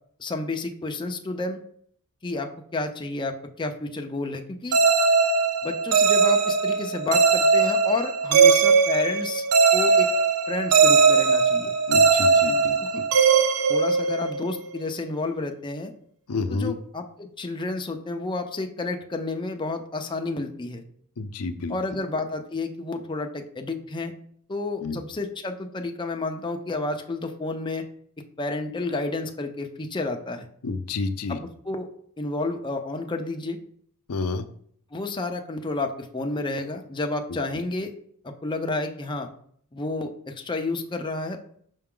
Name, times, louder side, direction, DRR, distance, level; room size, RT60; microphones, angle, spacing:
voice 1, 0.2-1.6 2.2-4.8 5.6-9.4 9.7-10.1 10.5-11.7 12.9-13.0 13.7-15.9 16.5-20.8 21.7-24.1 24.5-27.9 28.4-30.5 31.3-31.4 31.6-31.9 32.2-33.6 34.9-37.9 38.2-39.3 39.7-41.4, left 3 dB, 20° left, 4 dB, 0.6 m, -30 dB
sound 1, 4.7-14.5, right 5 dB, 85° right, 0.6 m, -19 dB
voice 2, 11.9-13.1 16.3-16.7 21.2-21.8 24.8-25.0 30.6-31.4 34.1-34.4, left 3 dB, 80° left, 9 dB, 0.6 m, -29 dB
5.8 x 5.3 x 3.7 m, 0.62 s
head